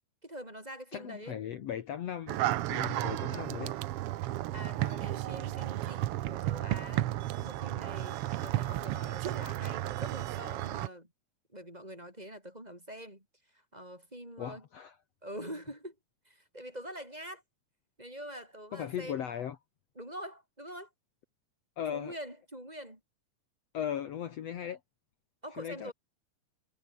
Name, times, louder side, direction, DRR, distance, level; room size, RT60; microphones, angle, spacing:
voice 1, 0.2-1.4 2.7-3.8 4.5-11.1 11.5-13.2 13.5-14.6 15.2-16.0 16.3-17.4 18.0-19.2 20.0-20.9 21.9-23.0 25.4-25.9, equal, 10° right, 6.3 m, -45 dB
voice 2, 0.9-3.7 14.4-14.9 18.7-19.6 21.8-22.2 23.7-24.8 25.6-25.9, left 9 dB, 60° left, 2.3 m, -37 dB
sound 1, 2.3-10.9, right 14 dB, 80° right, 1.3 m, -33 dB
omnidirectional pair, 3.6 m